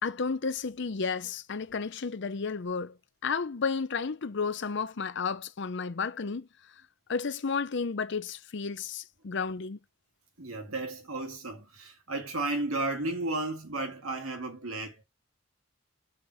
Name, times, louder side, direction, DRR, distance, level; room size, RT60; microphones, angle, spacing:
voice 1, 0.0-3.0 3.2-6.5 7.1-9.8, left 5 dB, 55° left, 0.6 m, -32 dB
voice 2, 10.4-15.0, right 2 dB, 85° right, 2.1 m, -33 dB
5.7 x 4.5 x 6.3 m
head